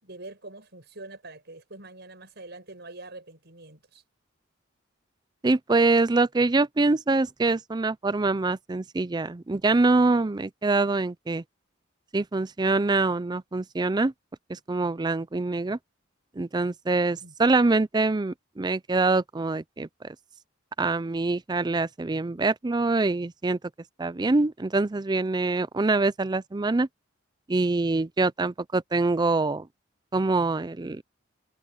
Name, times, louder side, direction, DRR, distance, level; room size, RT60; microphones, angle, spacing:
voice 1, 0.0-4.0 17.2-17.3, right 2 dB, 55° right, 7.4 m, -44 dB
voice 2, 5.4-11.4 12.1-14.1 14.5-15.8 16.4-20.2 20.8-23.6 24.0-26.9 27.5-29.7 30.1-31.0, right 3 dB, 20° right, 0.4 m, -24 dB
head